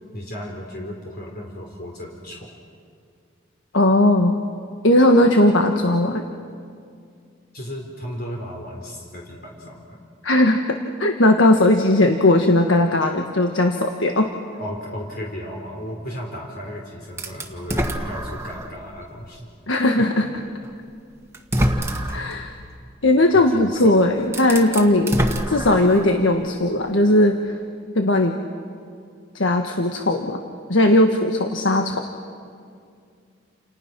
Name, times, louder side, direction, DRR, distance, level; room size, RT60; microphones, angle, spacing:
voice 1, 0.1-2.5 7.5-10.1 14.6-19.5 23.3-23.9, equal, 55° left, -1 dB, 3.8 m, -35 dB
voice 2, 3.7-4.4 4.8-6.2 10.2-14.3 19.7-20.2 22.1-22.5 23.0-25.2 25.5-27.5 27.9-28.3 29.3-30.4 30.7-32.0, left 1 dB, 85° left, 4 dB, 1.6 m, -18 dB
sound 1, 17.2-18.8 19.3-19.4 20.7-20.8 21.3-22.3 23.7-23.8 24.2-26.2, equal, 15° right, 1.9 m, -25 dB
29.5 x 29.5 x 6.1 m, 2.3 s
head